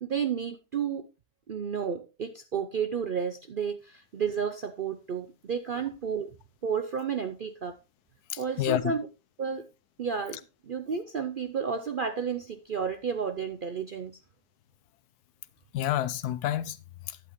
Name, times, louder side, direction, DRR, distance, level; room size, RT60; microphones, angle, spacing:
voice 1, 0.0-1.1 1.5-6.3 6.6-7.8 8.4-9.1 9.4-9.7 10.0-14.2, right 6 dB, 80° right, 0.4 m, -32 dB
voice 2, 8.3-8.9 15.7-17.2, left 11 dB, 70° left, 1.2 m, -30 dB
12.0 x 8.7 x 3.1 m
omnidirectional pair, 1.8 m